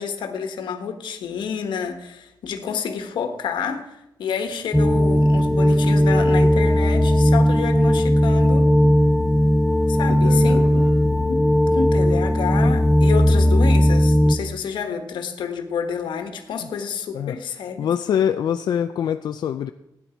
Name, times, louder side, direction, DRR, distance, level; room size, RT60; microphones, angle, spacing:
voice 1, 0.0-8.8 9.9-10.8 11.3-17.9, left 6 dB, 85° left, 7 dB, 1.4 m, -29 dB
sound 1, 4.7-14.4, equal, 5° left, 0.4 m, -17 dB
voice 2, 10.1-10.6 17.1-17.4 17.8-19.7, left 9 dB, 65° left, 8 dB, 0.4 m, -24 dB
16.5 x 9.8 x 4.6 m, 0.90 s
wide cardioid pair, 175°, 8 cm